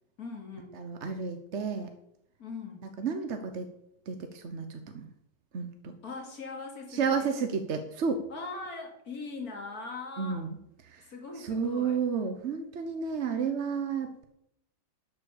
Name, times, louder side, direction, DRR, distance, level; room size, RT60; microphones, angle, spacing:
voice 1, 0.2-0.8 2.4-2.8 6.0-7.4 8.3-10.4 11.0-12.0, left 3 dB, 45° left, 2 dB, 2.7 m, -41 dB
voice 2, 0.7-1.9 3.0-3.7 4.1-5.1 5.5-5.9 6.9-8.3 10.2-10.6 10.8-11.1 11.4-14.2, right 5 dB, 50° right, 7 dB, 0.9 m, -32 dB
11.5 x 7.4 x 7.1 m, 0.77 s
omnidirectional pair, 2.3 m